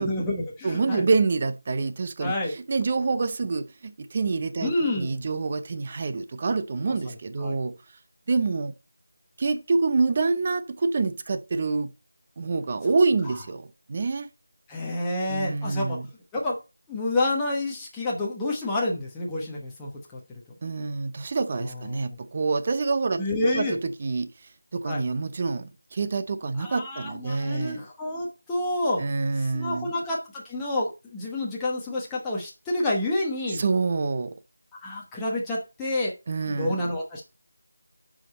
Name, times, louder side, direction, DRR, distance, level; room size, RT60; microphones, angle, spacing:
voice 1, 0.0-1.1 2.2-2.5 4.6-5.2 7.4-7.5 14.7-16.0 16.3-16.6 16.9-20.2 21.9-22.0 23.2-23.8 24.8-25.0 26.6-29.0 29.4-33.6 34.8-36.1 36.5-37.2, left 1 dB, 10° left, 1.2 m, -28 dB
voice 2, 0.6-7.7 8.3-8.7 9.4-11.9 12.4-14.3 15.3-16.1 20.6-23.2 23.5-24.3 24.7-27.8 29.0-29.9 33.5-34.3 36.3-36.8, right 4 dB, 35° right, 0.7 m, -26 dB
9.0 x 5.0 x 4.2 m
figure-of-eight pair, 170°, 0 cm